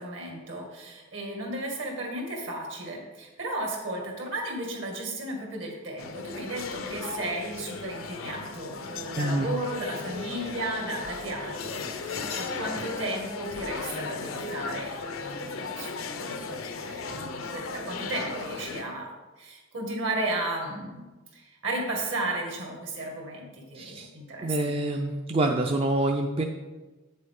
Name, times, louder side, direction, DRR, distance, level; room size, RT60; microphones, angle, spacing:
voice 1, 0.0-19.1 19.4-21.0 21.3-24.8, right 2 dB, 65° right, 0 dB, 1.9 m, -34 dB
sound 1, 6.0-18.8, left 4 dB, 90° left, 0.7 m, -36 dB
voice 2, 9.2-9.5 23.7-24.1 24.4-26.4, right 1 dB, 30° right, 3 dB, 0.4 m, -26 dB
8.1 x 6.7 x 3.7 m, 1.2 s
head